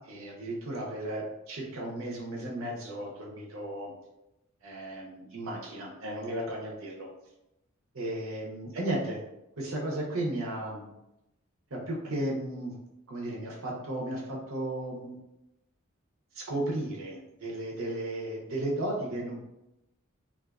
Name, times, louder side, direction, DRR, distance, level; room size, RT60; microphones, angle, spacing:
voice 1, 0.1-3.9 4.6-7.1 7.9-9.2 9.6-10.9 11.7-12.7 13.1-15.2 16.3-19.4, right 1 dB, 75° right, -2 dB, 0.6 m, -34 dB
2.4 x 2.3 x 2.2 m, 0.91 s
head